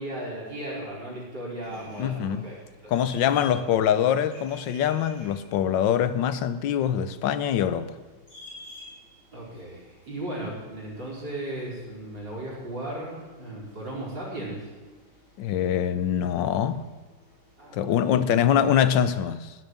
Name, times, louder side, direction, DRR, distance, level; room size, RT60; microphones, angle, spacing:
voice 1, 0.0-2.9 3.3-3.4 3.8-3.9 9.3-14.7 17.6-18.5, right 1 dB, 60° right, 5.2 m, -36 dB
sound 1, 1.6-19.1, left 2 dB, 40° left, 4.6 m, -52 dB
voice 2, 2.0-2.5 2.9-7.9 15.4-16.9 17.7-19.5, left 9 dB, 70° left, 1.4 m, -24 dB
15.5 x 7.2 x 9.5 m
omnidirectional pair, 2.2 m